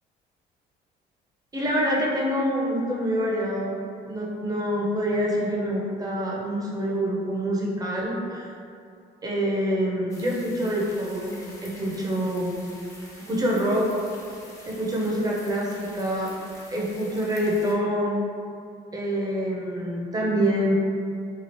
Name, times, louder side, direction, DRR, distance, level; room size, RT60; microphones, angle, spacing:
voice 1, 1.5-3.7 4.1-8.5 9.2-11.3 11.6-12.5 13.3-13.8 14.7-16.3 16.7-18.2 18.9-20.8, equal, 20° right, -4 dB, 0.6 m, -26 dB
sound 1, 10.1-17.7, left 1 dB, 20° left, 0.6 m, -47 dB
2.8 x 2.4 x 3.0 m, 2.5 s
cardioid pair, 110°, 17 cm